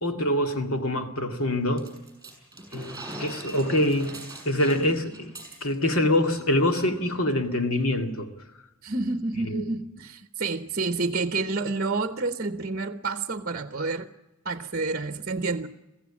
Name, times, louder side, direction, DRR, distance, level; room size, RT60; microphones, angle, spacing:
voice 1, 0.0-1.9 2.7-4.2 4.5-5.3 5.6-8.3 9.5-9.6, left 1 dB, 70° left, 2.3 m, -25 dB
sound 1, 1.8-6.0 6.3-6.4 6.7-7.1, right 2 dB, 15° right, 6.8 m, -42 dB
voice 2, 8.8-14.1 14.4-15.7, right 3 dB, 45° right, 0.9 m, -29 dB
23.0 x 15.5 x 8.7 m
head